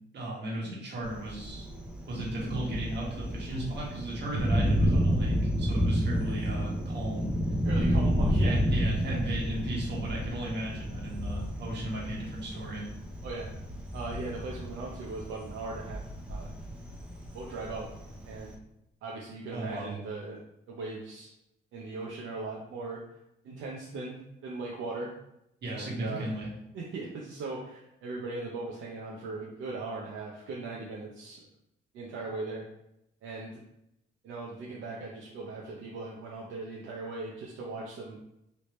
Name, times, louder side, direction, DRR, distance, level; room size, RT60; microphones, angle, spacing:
voice 1, 0.1-1.7 2.1-7.3 8.4-12.9 19.5-19.9 25.6-26.5, right 1 dB, 60° right, -4 dB, 1.4 m, -36 dB
Thunder, 1.0-18.6, equal, 5° right, 0.7 m, -30 dB
voice 2, 7.6-8.6 13.2-13.5 13.9-16.0 16.3-16.5 17.3-17.9 18.2-18.5 19.0-20.4 20.7-21.3 21.7-23.0 23.4-25.1 25.7-26.3 26.7-31.5 31.9-32.6 33.2-33.6 34.2-38.2, right 3 dB, 80° right, -3 dB, 0.6 m, -39 dB
3.2 x 2.8 x 3.1 m, 0.84 s
cardioid pair, 90°, 20 cm